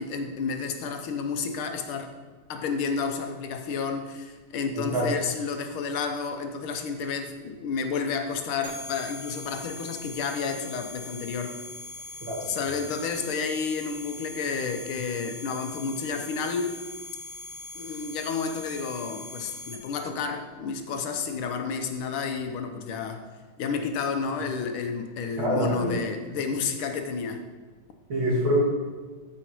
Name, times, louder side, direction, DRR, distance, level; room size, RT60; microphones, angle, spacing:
voice 1, 0.0-2.1 2.5-11.6 12.4-16.8 17.8-23.2 23.6-27.4, left 5 dB, 80° left, 6 dB, 1.7 m, -31 dB
sound 1, 8.6-20.0, left 2 dB, 30° right, 2.4 m, -41 dB
voice 2, 25.4-25.9 28.1-28.6, right 1 dB, 70° right, -4 dB, 3.3 m, -25 dB
13.0 x 5.1 x 4.6 m, 1.4 s
omnidirectional pair, 2.3 m